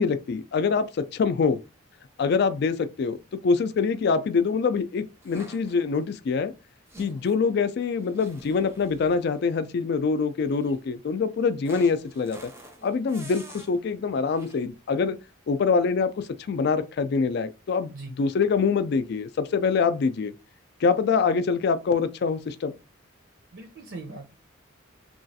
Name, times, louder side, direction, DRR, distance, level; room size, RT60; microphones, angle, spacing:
voice 1, 0.0-1.6 2.2-3.2 3.4-6.5 7.0-12.5 12.8-15.2 15.5-17.9 18.2-20.3 20.8-22.7, left 5 dB, 55° left, 0.3 m, -24 dB
sound 1, 5.2-6.0 6.9-7.4 8.0-9.4 10.5-10.8 11.6-13.7 14.3-14.7, right 1 dB, 15° right, 0.5 m, -47 dB
voice 2, 23.5-24.3, right 3 dB, 60° right, 0.6 m, -40 dB
3.0 x 2.3 x 2.7 m
head